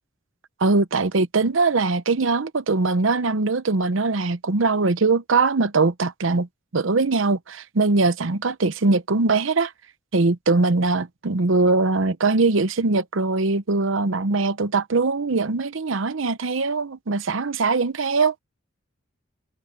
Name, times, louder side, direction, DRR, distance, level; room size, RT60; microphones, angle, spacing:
voice 1, 0.6-6.5 6.7-9.7 10.1-18.3, right 3 dB, 70° right, 0.8 m, -21 dB
head